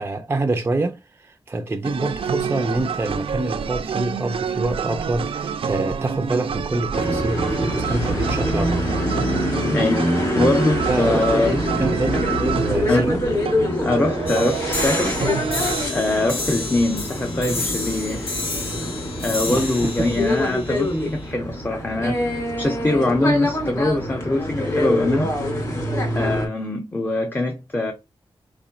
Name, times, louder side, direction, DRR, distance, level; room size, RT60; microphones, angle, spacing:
voice 1, 0.0-8.8 10.9-13.2 19.5-20.1, right 2 dB, 25° right, 0.5 m, -26 dB
sound 1, 1.8-15.8, right 7 dB, 75° right, 0.5 m, -28 dB
sound 2, 6.9-26.5, left 1 dB, 35° left, 2.3 m, -25 dB
voice 2, 9.7-11.6 12.9-13.2 13.8-15.2 15.9-18.4 19.2-25.3 26.1-27.9, left 2 dB, 20° left, 0.7 m, -23 dB
sound 3, 14.3-21.3, left 2 dB, 85° left, 2.5 m, -31 dB
4.5 x 4.2 x 2.4 m
wide cardioid pair, 170°, 9 cm